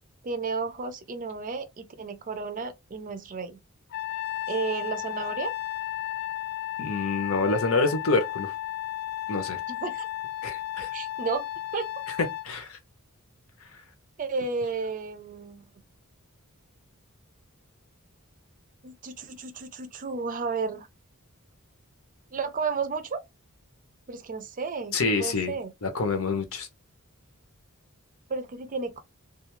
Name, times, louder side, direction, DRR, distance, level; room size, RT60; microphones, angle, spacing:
voice 1, 0.2-3.6 4.5-5.5 9.7-10.1 10.9-11.4 11.7-11.9 14.2-15.6 18.8-20.9 22.3-23.2 24.1-25.7 28.3-29.0, right 4 dB, 40° right, 0.5 m, -32 dB
Trumpet, 3.9-12.5, left 13 dB, 45° left, 0.3 m, -34 dB
voice 2, 6.8-8.5 9.3-9.6 10.4-10.9 12.1-12.2 12.4-12.8 24.9-25.5 25.8-26.7, left 3 dB, 70° left, 0.8 m, -27 dB
2.4 x 2.3 x 3.0 m
head